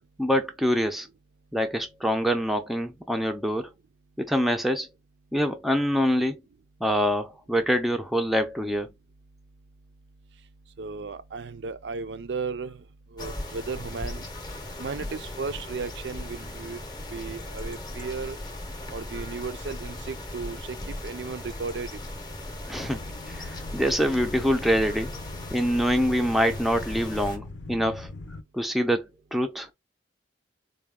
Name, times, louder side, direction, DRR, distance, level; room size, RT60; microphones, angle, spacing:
voice 1, 0.2-1.1 1.5-3.7 4.2-4.9 5.3-6.4 6.8-8.9 22.7-23.0 23.3-25.1 25.5-28.1 28.5-29.7, equal, ahead, 0.4 m, -25 dB
voice 2, 10.8-12.8 13.1-14.3 14.8-16.8 17.1-18.4 18.9-22.0, right 4 dB, 65° right, 0.5 m, -35 dB
sound 1, 13.2-27.4, left 1 dB, 20° left, 0.7 m, -38 dB
sound 2, 22.7-28.4, left 2 dB, 70° left, 0.5 m, -41 dB
4.0 x 2.2 x 3.5 m
head